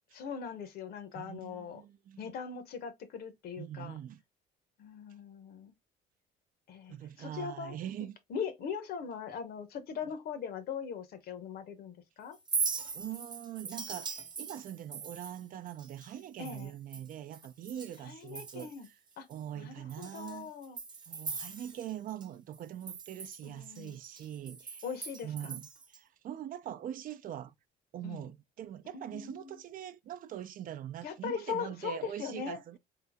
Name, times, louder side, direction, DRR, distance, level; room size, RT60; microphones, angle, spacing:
voice 1, 0.1-1.8 2.2-4.0 4.8-5.7 6.7-7.8 8.3-12.4 16.4-16.7 18.0-18.9 19.2-19.3 19.6-20.8 23.4-24.0 24.8-25.6 28.0-28.2 28.9-29.6 31.0-32.6, left 7 dB, 65° left, 0.9 m, -40 dB
voice 2, 1.1-2.3 3.6-4.2 6.9-8.2 12.9-18.9 19.3-20.5 21.1-24.8 25.2-27.5 27.9-32.8, right 11 dB, 55° right, 0.5 m, -43 dB
Chink clink, 12.3-18.0 18.3-18.9 19.3-19.4 19.9-22.3 22.5-26.0, right 5 dB, 25° right, 0.9 m, -40 dB
3.9 x 2.7 x 3.4 m
cardioid pair, 110°, 17 cm